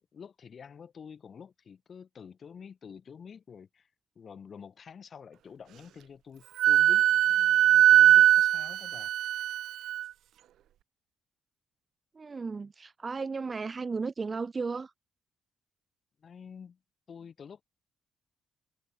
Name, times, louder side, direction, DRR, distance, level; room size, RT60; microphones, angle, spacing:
voice 1, 0.1-3.9 4.1-9.1 16.2-16.8 17.1-17.6, left 6 dB, 40° left, 6.3 m, -48 dB
Wind instrument woodwind instrument, 6.6-10.0, right 12 dB, 70° right, 0.4 m, -21 dB
voice 2, 12.1-14.9, right 4 dB, 25° right, 0.7 m, -34 dB
cardioid pair, 110°, 0 cm